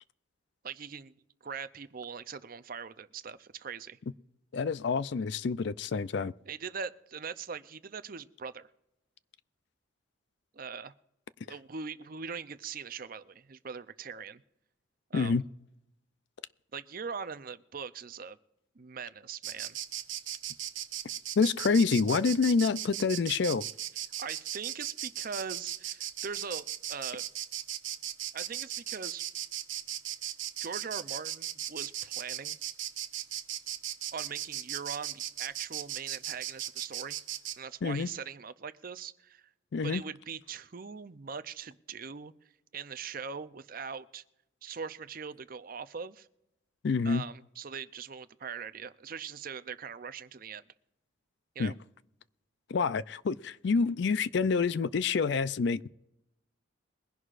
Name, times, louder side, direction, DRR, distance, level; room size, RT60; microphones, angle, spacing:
voice 1, 0.6-1.1 1.4-4.0 6.4-8.7 10.5-10.9 11.4-14.4 15.1-15.3 16.7-18.4 18.8-19.8 24.2-27.2 28.3-29.2 30.6-32.6 34.1-37.2 37.6-39.4 39.8-42.3 42.7-44.2 44.6-46.3 47.0-50.6 51.6-51.7, right 6 dB, 45° right, 0.5 m, -41 dB
voice 2, 4.5-6.3 15.1-15.4 21.4-23.6 37.8-38.1 39.7-40.0 46.8-47.2 51.6-51.7 52.7-55.9, left 4 dB, 55° left, 0.4 m, -27 dB
Insect, 19.4-37.6, right 11 dB, 65° right, 0.9 m, -37 dB
22.5 x 11.0 x 2.5 m
head